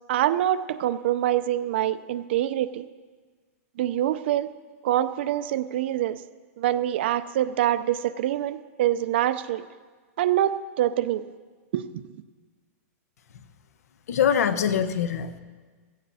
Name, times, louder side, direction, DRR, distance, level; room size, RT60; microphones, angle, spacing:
voice 1, 0.1-2.9 3.8-4.5 4.8-6.2 6.6-9.7 10.2-11.2 11.7-12.1, right 12 dB, 45° right, 13 dB, 0.5 m, -25 dB
voice 2, 14.1-15.4, left 8 dB, 80° left, 11 dB, 1.0 m, -23 dB
16.0 x 15.5 x 4.2 m, 1.5 s
supercardioid pair, 175°, 8 cm